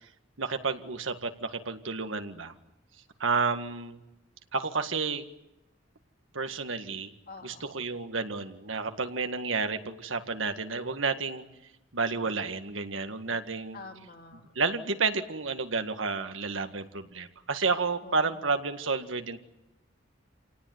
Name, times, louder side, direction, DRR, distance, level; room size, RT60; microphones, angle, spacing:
voice 1, 0.4-2.5 3.2-4.0 4.5-5.3 6.3-7.1 7.4-11.4 11.9-13.8 14.6-19.4, right 4 dB, 85° right, 8 dB, 1.9 m, -31 dB
voice 2, 7.3-7.8 13.7-14.5 18.0-18.5, left 3 dB, 50° left, 4 dB, 3.0 m, -47 dB
28.0 x 18.5 x 9.6 m, 0.94 s
head